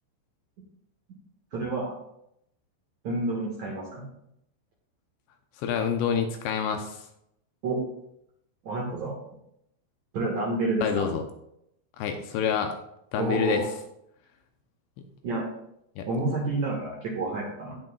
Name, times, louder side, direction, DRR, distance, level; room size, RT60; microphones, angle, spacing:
voice 1, 1.5-2.0 3.0-4.0 7.6-7.8 8.6-9.2 10.1-11.1 13.2-13.7 15.2-15.5 16.1-17.7, right 2 dB, 60° right, -4 dB, 2.0 m, -29 dB
voice 2, 5.6-7.0 10.8-11.2 12.0-12.8 13.1-13.6 15.0-15.1 16.0-16.1, left 7 dB, 80° left, 5 dB, 2.8 m, -27 dB
17.5 x 6.2 x 2.4 m, 0.77 s
omnidirectional pair, 5.4 m